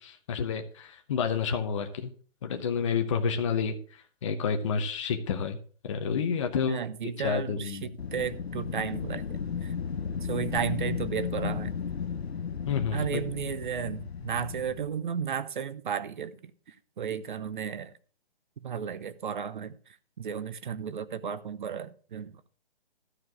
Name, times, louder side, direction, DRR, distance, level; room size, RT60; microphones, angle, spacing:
voice 1, 0.0-2.1 2.4-3.8 4.2-5.6 5.8-6.8 7.2-7.9 12.7-13.2, left 6 dB, 30° left, 5 dB, 0.9 m, -29 dB
voice 2, 6.7-9.3 9.6-9.7 10.1-11.7 12.9-17.9 18.6-22.4, right 7 dB, 50° right, 15 dB, 0.8 m, -34 dB
Wind, 8.0-14.9, left 6 dB, 80° left, 1.1 m, -34 dB
13.0 x 4.7 x 6.1 m, 0.43 s
hypercardioid pair, 160°, 31 cm